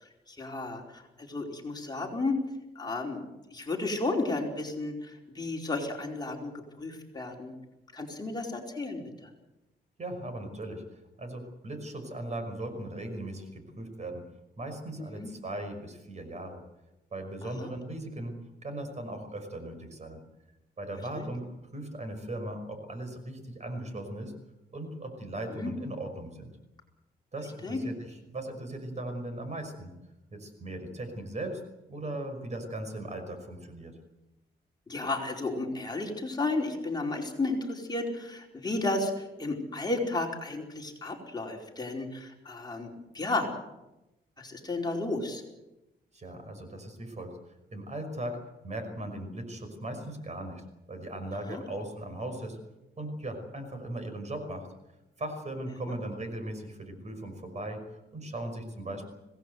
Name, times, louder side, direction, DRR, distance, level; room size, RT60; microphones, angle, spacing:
voice 1, 0.3-2.4 2.7-3.2 3.5-6.5 6.8-7.5 7.9-9.0 15.1-15.3 17.6-17.7 21.2-21.3 25.5-25.7 27.6-27.8 34.9-43.5 44.4-45.4 51.5-51.6, left 2 dB, 25° left, 0 dB, 4.7 m, -33 dB
voice 2, 10.0-10.8 11.2-14.2 14.6-16.6 17.1-18.3 18.6-20.2 20.8-21.5 21.7-24.3 24.7-26.5 27.3-29.9 30.3-31.6 31.9-33.9 46.1-47.4 47.7-48.4 48.6-52.6 53.0-54.7 55.2-59.1, right 1 dB, 40° right, 7 dB, 5.7 m, -38 dB
25.5 x 18.5 x 8.1 m, 0.95 s
cardioid pair, 115°, 18 cm